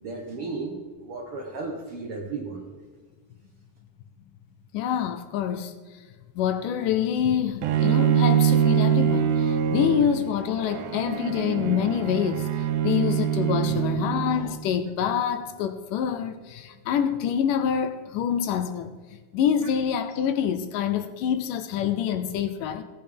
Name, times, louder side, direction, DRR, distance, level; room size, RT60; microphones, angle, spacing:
voice 1, 0.0-2.6, right 3 dB, 60° right, -1 dB, 1.5 m, -34 dB
voice 2, 4.7-5.7 6.4-12.5 12.8-19.0 19.3-22.8, left 8 dB, 80° left, 10 dB, 2.0 m, -26 dB
Bowed string instrument, 7.6-14.7, right 9 dB, 80° right, 1.9 m, -24 dB
16.5 x 8.8 x 3.5 m, 1.4 s
omnidirectional pair, 4.1 m